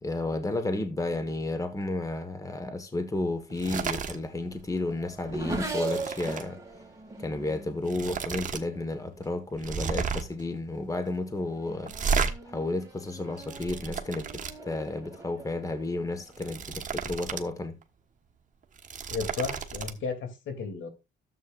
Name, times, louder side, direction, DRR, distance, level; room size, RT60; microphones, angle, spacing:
voice 1, 0.0-6.6 7.2-11.9 12.4-17.8, left 2 dB, 15° left, 1.3 m, -32 dB
sound 1, 3.5-4.2 4.5-4.8 5.1-6.5 7.4-7.5 7.8-8.6 8.9-9.0 9.6-10.4 11.8-12.3 13.1-14.5 16.2-17.5 17.8-17.9 18.6-19.9, right 5 dB, 40° right, 1.3 m, -32 dB
Race car auto racing / Accelerating revving vroom, 3.6-9.5 10.3-10.7 11.1-17.0, right 3 dB, 15° right, 2.6 m, -41 dB
voice 2, 19.1-20.9, left 5 dB, 70° left, 2.6 m, -34 dB
13.0 x 7.8 x 2.4 m
cardioid pair, 90°, 20 cm